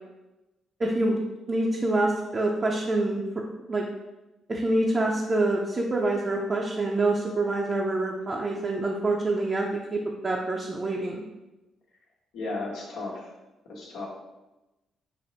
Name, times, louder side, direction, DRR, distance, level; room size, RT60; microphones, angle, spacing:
voice 1, 0.8-1.2 1.5-3.4 3.7-3.8 4.5-11.2, right 2 dB, 30° right, -2 dB, 0.5 m, -26 dB
voice 2, 12.3-13.2 13.7-14.1, left 2 dB, 85° left, -4 dB, 1.2 m, -34 dB
5.1 x 2.1 x 4.0 m, 1.0 s
cardioid pair, 90°, 0 cm